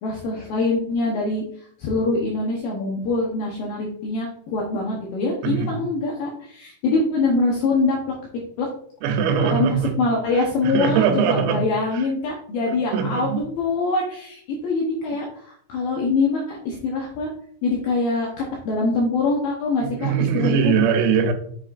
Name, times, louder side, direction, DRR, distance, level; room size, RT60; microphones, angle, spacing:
voice 1, 0.0-8.0 8.6-8.7 9.4-9.7 10.0-17.3 17.6-20.7, left 3 dB, 85° left, -2 dB, 2.1 m, -24 dB
voice 2, 5.4-5.8 9.0-10.0 10.4-11.6 11.9-12.1 12.9-13.4 19.8-21.3, right 7 dB, 85° right, 5 dB, 3.5 m, -21 dB
7.5 x 6.3 x 2.5 m, 0.62 s
omnidirectional pair, 5.7 m